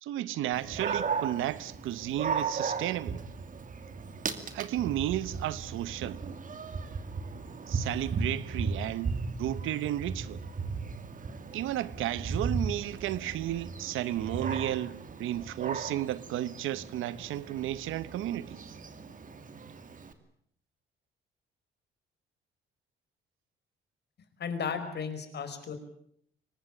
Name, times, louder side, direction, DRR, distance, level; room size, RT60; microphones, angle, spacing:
voice 1, 0.0-3.2 4.5-6.2 7.7-10.4 11.5-18.6, right 13 dB, 85° right, 1.1 m, -33 dB
Dog, 0.5-20.1, right 5 dB, 40° right, 2.6 m, -36 dB
voice 2, 24.4-25.7, left 6 dB, 55° left, 4.9 m, -34 dB
24.0 x 19.5 x 8.7 m
cardioid pair, 90°, 20 cm